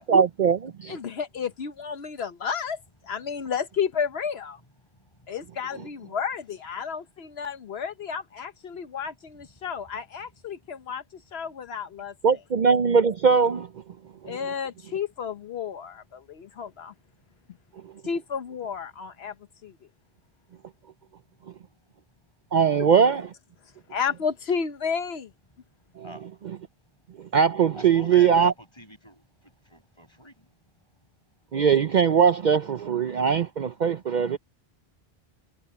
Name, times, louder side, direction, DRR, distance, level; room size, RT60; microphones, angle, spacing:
voice 1, 0.0-1.0 12.2-13.7 14.2-14.4 22.5-23.3 26.0-26.1 26.4-26.6 27.2-28.5 31.5-34.4, right 6 dB, 50° right, 0.7 m, -21 dB
voice 2, 0.9-4.6 5.3-12.1 14.2-16.9 18.0-19.3 19.6-19.8 22.8-22.9 23.9-25.3, left 6 dB, 80° left, 1.2 m, -32 dB
voice 3, 27.7-29.2 29.7-30.3, left 1 dB, 25° left, 6.6 m, -44 dB
omnidirectional pair, 1.0 m